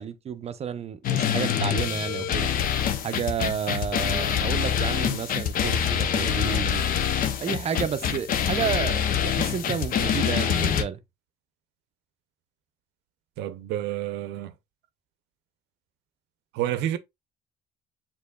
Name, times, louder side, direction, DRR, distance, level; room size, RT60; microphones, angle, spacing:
voice 1, 0.0-2.5 3.0-6.8 7.4-11.0, right 7 dB, 40° right, 0.6 m, -31 dB
sound 1, 1.0-10.8, left 8 dB, 55° left, 0.7 m, -25 dB
voice 2, 13.4-14.5 16.5-17.0, right 12 dB, 90° right, 0.6 m, -29 dB
6.6 x 3.0 x 2.3 m
cardioid pair, 110°, 17 cm